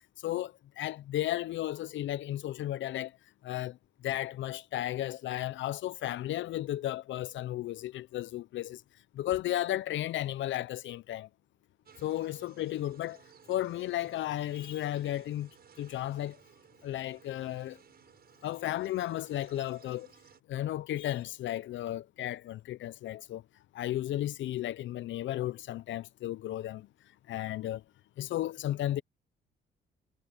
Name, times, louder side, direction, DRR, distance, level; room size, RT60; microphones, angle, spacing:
voice 1, 0.2-3.2 3.4-8.8 9.1-11.3 12.0-13.2 13.5-15.5 15.8-16.4 16.8-17.8 18.4-20.1 20.5-23.4 23.7-26.9 27.3-27.8 28.2-29.0, left 13 dB, 75° left, 0.6 m, -34 dB
sound 1, 11.9-20.4, right 7 dB, 50° right, 6.6 m, -58 dB
cardioid pair, 90°, 20 cm